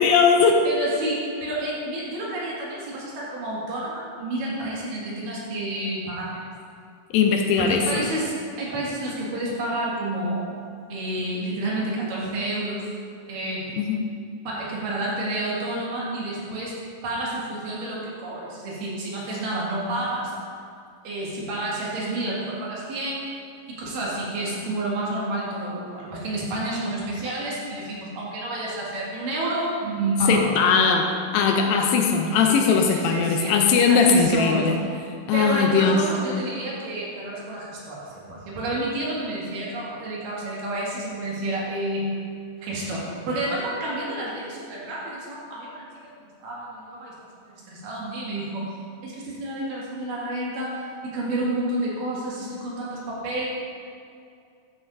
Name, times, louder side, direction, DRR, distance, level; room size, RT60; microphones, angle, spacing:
voice 1, 0.0-0.6 7.1-8.0 13.8-14.1 30.3-34.7 35.3-36.0, left 5 dB, 90° left, 2 dB, 2.4 m, -19 dB
voice 2, 0.6-6.4 7.6-10.4 10.9-12.9 13.3-13.7 14.4-16.7 17.0-20.3 21.0-23.2 23.7-30.6 32.3-33.5 33.9-34.9 35.3-42.1 42.6-45.8 46.4-47.1 47.4-48.7 49.0-53.5, right 1 dB, 75° right, -5 dB, 3.4 m, -29 dB
12.0 x 8.7 x 2.6 m, 2.4 s
omnidirectional pair, 4.0 m